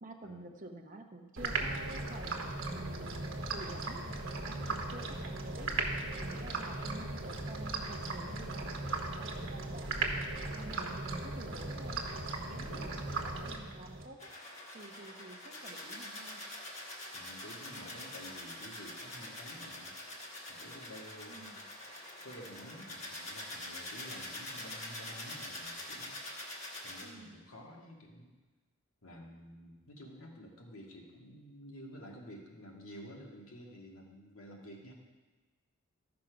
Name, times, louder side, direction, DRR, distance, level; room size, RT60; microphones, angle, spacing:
voice 1, 0.0-5.7 6.2-9.9 10.6-12.0 12.5-14.3 14.7-16.4 21.3-21.6 27.0-27.4, right 2 dB, 40° right, 4 dB, 0.8 m, -49 dB
sound 1, 1.4-14.1, right 2 dB, 60° right, 1.2 m, -37 dB
voice 2, 12.7-13.0 17.1-20.0 20.5-21.5 22.2-26.2 26.8-28.3 29.0-34.9, equal, 80° left, -1 dB, 1.9 m, -51 dB
sound 2, 14.2-27.0, left 1 dB, 30° left, 1.5 m, -45 dB
14.0 x 5.9 x 5.1 m, 1.3 s
head